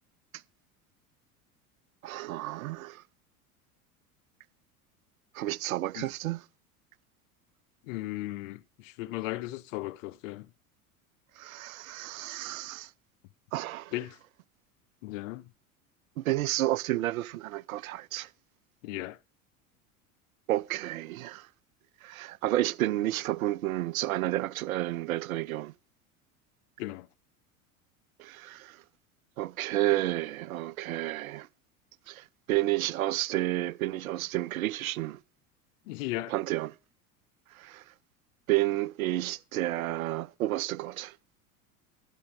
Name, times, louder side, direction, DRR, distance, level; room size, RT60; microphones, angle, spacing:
voice 1, 2.0-3.0 5.3-6.4 11.4-12.9 13.5-13.9 16.2-18.3 20.5-21.5 22.0-25.7 28.2-28.8 29.4-31.5 32.1-35.2 36.3-36.8 37.5-37.9 38.5-41.2, right 16 dB, 70° right, 0.6 m, -31 dB
voice 2, 7.8-10.5 13.9-14.2 15.0-15.5 18.8-19.2 26.8-27.1 35.9-36.3, left 17 dB, 60° left, 0.7 m, -36 dB
12.0 x 9.8 x 3.6 m
figure-of-eight pair, 80°, 44 cm